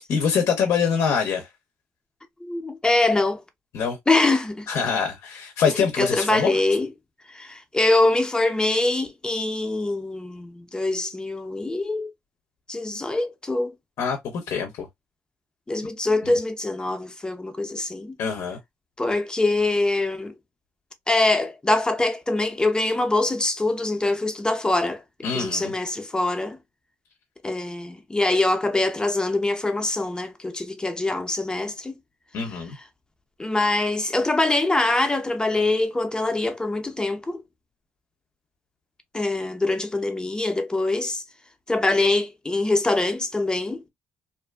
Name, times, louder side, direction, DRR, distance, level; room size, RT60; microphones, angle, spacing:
voice 1, 0.1-1.5 3.7-4.0 4.7-6.6 14.0-14.9 16.2-16.3 18.2-18.6 25.2-25.7 32.3-32.8, left 6 dB, 70° left, 0.6 m, -24 dB
voice 2, 2.4-3.4 4.1-4.7 6.0-6.9 7.3-12.1 12.7-13.7 15.7-18.1 19.0-20.3 21.1-25.0 25.3-26.6 27.4-31.9 33.4-37.4 39.1-41.2 41.7-43.8, left 2 dB, 15° left, 0.6 m, -24 dB
2.5 x 2.3 x 2.2 m
supercardioid pair, 75°, 5 cm